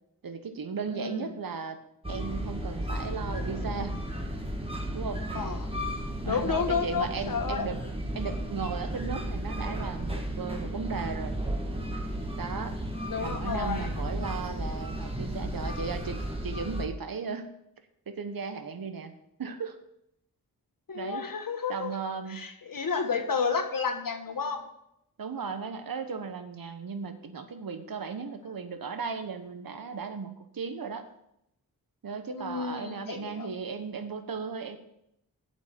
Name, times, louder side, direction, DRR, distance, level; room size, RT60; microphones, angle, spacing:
voice 1, 0.2-1.8 2.1-4.0 4.9-5.3 6.2-7.8 8.1-11.3 12.4-12.8 13.2-16.2 16.4-17.5 18.1-19.1 19.4-19.8 20.9-21.3 21.7-22.4 25.2-31.1 32.0-34.8, right 5 dB, 70° right, 8 dB, 1.1 m, -36 dB
voice 2, 0.9-1.3 5.3-5.6 6.2-7.7 13.1-13.9 20.9-21.9 22.3-24.7 32.3-33.5, left 5 dB, 65° left, 6 dB, 1.3 m, -31 dB
sound 1, 2.0-16.9, right 1 dB, 15° right, 1.5 m, -34 dB
8.0 x 5.4 x 7.4 m, 0.79 s
wide cardioid pair, 75°, 36 cm